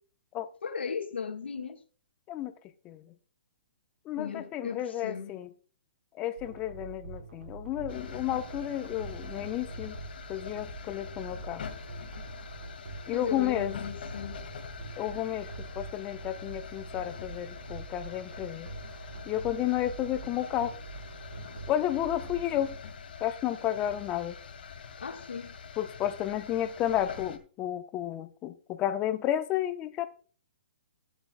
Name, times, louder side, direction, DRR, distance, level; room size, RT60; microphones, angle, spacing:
voice 1, 0.6-1.8 4.1-5.3 8.8-9.0 13.1-14.4 25.0-25.5, left 6 dB, 85° left, 1.5 m, -37 dB
voice 2, 4.0-5.5 6.2-10.0 10.3-11.6 13.1-13.7 15.0-18.7 19.3-20.7 21.7-22.7 23.2-24.4 25.8-30.1, left 12 dB, 20° left, 0.9 m, -32 dB
sound 1, 6.4-22.8, right 4 dB, 75° right, 4.4 m, -45 dB
sound 2, 7.9-27.4, left 6 dB, 65° left, 2.1 m, -44 dB
15.0 x 11.0 x 2.3 m
hypercardioid pair, 155°, 6 cm